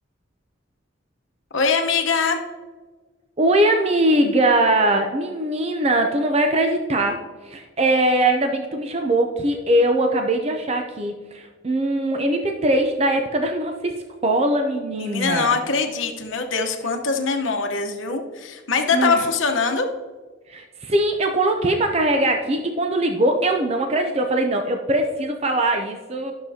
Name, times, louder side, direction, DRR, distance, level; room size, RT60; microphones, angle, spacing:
voice 1, 1.5-2.4 14.9-19.9, left 4 dB, 70° left, 4 dB, 1.0 m, -22 dB
voice 2, 3.4-15.6 18.9-19.2 20.5-26.3, right 1 dB, 30° right, 4 dB, 0.5 m, -21 dB
12.0 x 6.5 x 2.8 m, 1.4 s
head